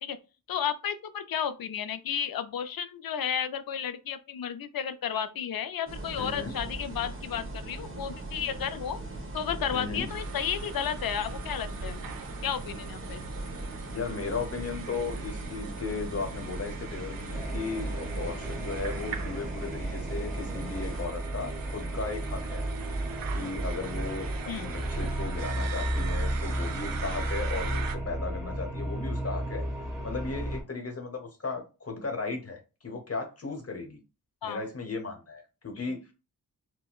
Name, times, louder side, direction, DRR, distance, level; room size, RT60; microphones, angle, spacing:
voice 1, 0.5-9.0 9.3-12.0 12.4-13.2 24.5-24.7 34.4-34.6, left 8 dB, 70° left, 0.5 m, -32 dB
sound 1, 5.9-21.0, right 2 dB, 35° right, 1.1 m, -39 dB
voice 2, 6.2-6.6 9.7-10.1 13.9-22.6 23.3-29.6 30.0-34.0 34.4-36.1, left 4 dB, 40° left, 1.0 m, -36 dB
sound 2, 10.1-28.0, right 6 dB, 65° right, 0.6 m, -42 dB
sound 3, 17.3-30.6, right 1 dB, ahead, 1.7 m, -33 dB
4.2 x 2.1 x 2.3 m
cardioid pair, 55°, 37 cm